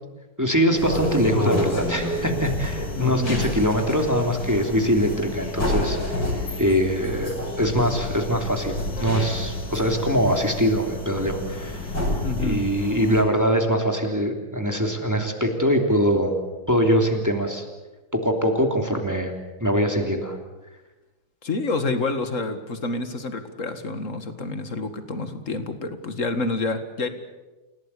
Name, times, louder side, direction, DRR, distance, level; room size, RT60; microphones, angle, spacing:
voice 1, 0.4-6.2 6.6-12.1 12.4-16.4 16.7-17.6 18.1-19.3 19.6-20.4, equal, 10° right, 3 dB, 2.9 m, -23 dB
sound 1, 0.8-13.2, left 1 dB, 60° left, 6.7 m, -29 dB
voice 2, 3.0-3.4 12.2-12.7 21.4-27.1, left 3 dB, 40° left, 9 dB, 2.1 m, -28 dB
29.5 x 17.5 x 8.4 m, 1.1 s
omnidirectional pair, 2.2 m